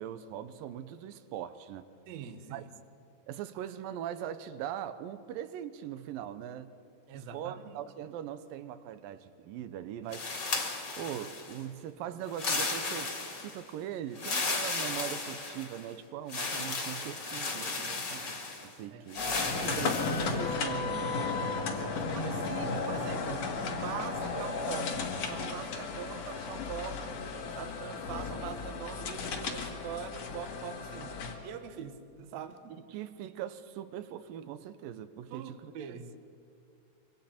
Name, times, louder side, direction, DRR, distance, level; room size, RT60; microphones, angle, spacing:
voice 1, 0.0-1.9 2.5-2.6 3.3-6.7 7.1-10.3 11.0-13.1 13.4-19.3 19.6-21.2 21.7-22.2 32.7-36.0, right 10 dB, 85° right, 12 dB, 2.5 m, -41 dB
voice 2, 2.1-2.7 7.1-7.8 18.9-19.9 21.9-27.2 27.6-32.8 35.3-36.1, right 7 dB, 65° right, 8 dB, 1.9 m, -43 dB
sound 1, 10.1-11.6 12.3-13.6 14.1-15.8 16.3-18.7 19.1-20.4, left 3 dB, 35° left, 2.4 m, -35 dB
sound 2, 19.2-31.3, left 4 dB, 55° left, 2.5 m, -34 dB
25.5 x 24.0 x 4.4 m, 2.4 s
omnidirectional pair, 4.0 m